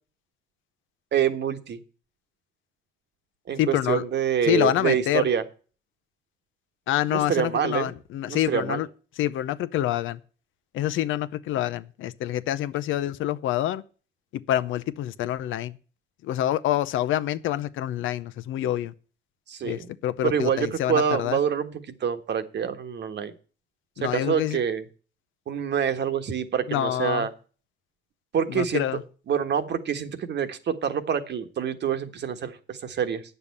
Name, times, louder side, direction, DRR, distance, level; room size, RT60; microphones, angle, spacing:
voice 1, 1.1-1.8 3.5-5.4 7.1-7.9 8.3-8.8 19.5-19.9 20.2-21.7 22.0-23.3 24.0-24.8 25.5-27.3 28.3-28.8 29.3-33.2, right 8 dB, 60° right, 1.4 m, -26 dB
voice 2, 3.6-4.0 4.4-5.3 6.9-8.9 9.2-10.2 10.7-13.8 14.5-15.8 16.2-18.9 19.6-21.4 24.0-24.6 26.7-27.3 28.5-29.0, left 12 dB, 85° left, 0.7 m, -26 dB
8.9 x 6.9 x 8.4 m
cardioid pair, 90°, 20 cm